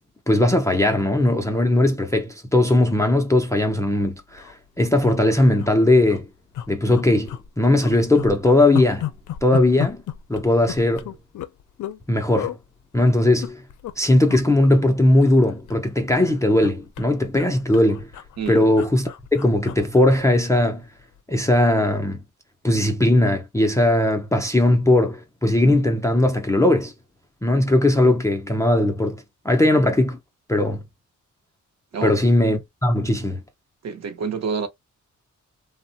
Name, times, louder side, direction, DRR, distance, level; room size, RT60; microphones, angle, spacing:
voice 1, 0.3-6.3 6.7-9.1 9.4-10.0 10.3-11.1 12.1-12.6 12.9-13.6 14.0-18.1 18.5-20.8 21.3-22.2 22.6-26.9 27.4-30.2 30.5-30.8 32.0-33.4, left 1 dB, 10° left, 0.4 m, -19 dB
sound 1, 3.6-3.7 4.0-4.1 4.3-4.5 5.0-5.7 6.0-6.2 6.5-7.5 7.8-12.0 12.3-12.6 13.2-13.9 14.2-14.4 14.7-15.8 16.1-20.7 21.0-21.2, left 11 dB, 75° left, 0.4 m, -34 dB
voice 2, 31.9-32.2 33.8-34.7, right 5 dB, 60° right, 0.6 m, -27 dB
3.0 x 2.0 x 2.7 m
wide cardioid pair, 160°, 31 cm